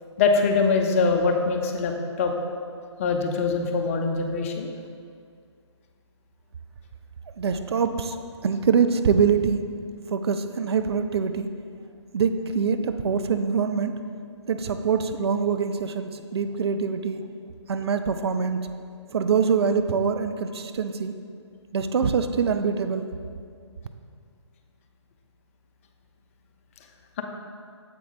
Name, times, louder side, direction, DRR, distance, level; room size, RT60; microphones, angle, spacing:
voice 1, 0.2-2.3 3.0-4.7, left 4 dB, 30° left, 3 dB, 0.5 m, -23 dB
voice 2, 7.4-8.2 8.4-9.6 10.1-11.5 12.1-14.0 14.5-17.2 17.7-18.7 19.1-21.2 21.7-23.1, right 6 dB, 60° right, 8 dB, 0.5 m, -24 dB
7.5 x 4.3 x 4.1 m, 2.2 s
figure-of-eight pair, 140°, 15 cm